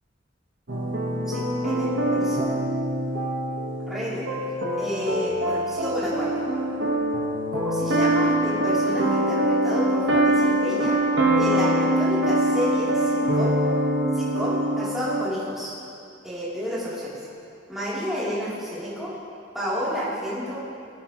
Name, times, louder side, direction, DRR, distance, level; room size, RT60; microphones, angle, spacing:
sound 1, 0.7-15.2, right 1 dB, 75° right, 1.6 m, -24 dB
voice 1, 1.3-2.5 3.9-4.3 4.8-6.4 7.5-11.0 11.4-13.6 14.1-15.7 16.2-17.2 17.7-19.1 19.5-20.6, equal, ahead, -11 dB, 3.6 m, -30 dB
19.5 x 16.5 x 3.2 m, 2.5 s
head